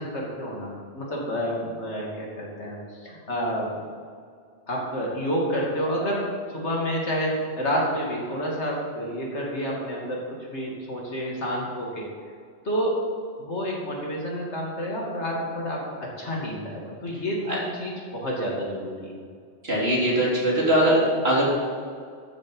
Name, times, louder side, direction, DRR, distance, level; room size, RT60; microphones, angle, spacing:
voice 1, 0.0-3.7 4.7-12.0 12.6-13.0 13.4-19.2, equal, 85° left, -3 dB, 3.0 m, -29 dB
voice 2, 19.6-21.5, right 1 dB, 65° right, -5 dB, 3.5 m, -21 dB
12.5 x 7.8 x 5.5 m, 2.1 s
omnidirectional pair, 1.1 m